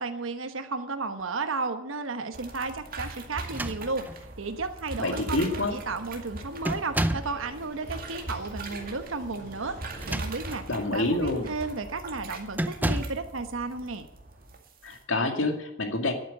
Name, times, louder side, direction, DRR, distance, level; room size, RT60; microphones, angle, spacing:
voice 1, 0.0-10.6 10.9-14.1, right 3 dB, 85° right, 8 dB, 1.1 m, -33 dB
sound 1, 2.3-15.0, right 2 dB, 45° right, 2.1 m, -41 dB
sound 2, 3.4-4.3 5.2-5.3 5.6-6.0 6.6-7.4 9.8-10.7 11.2-11.4 12.5-13.3, right 1 dB, 10° right, 0.6 m, -31 dB
voice 2, 5.0-5.8 10.7-11.5 14.8-16.1, left 2 dB, 75° left, 5 dB, 2.2 m, -27 dB
sound 3, 5.2-10.2, equal, 55° left, 6.8 m, -49 dB
11.5 x 9.0 x 8.5 m, 0.82 s
head